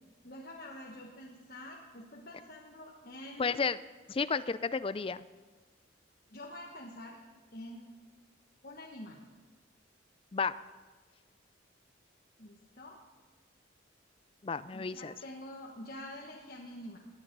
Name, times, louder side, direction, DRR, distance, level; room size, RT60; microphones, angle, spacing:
voice 1, 0.2-3.6 6.3-7.2 7.5-7.9 8.6-9.2 12.4-13.0 14.7-17.0, left 1 dB, 50° left, -2 dB, 1.4 m, -47 dB
voice 2, 3.4-3.8 4.1-5.3 10.3-10.6 14.4-15.1, left 5 dB, 30° left, 15 dB, 0.4 m, -32 dB
19.0 x 10.5 x 5.4 m, 1.4 s
head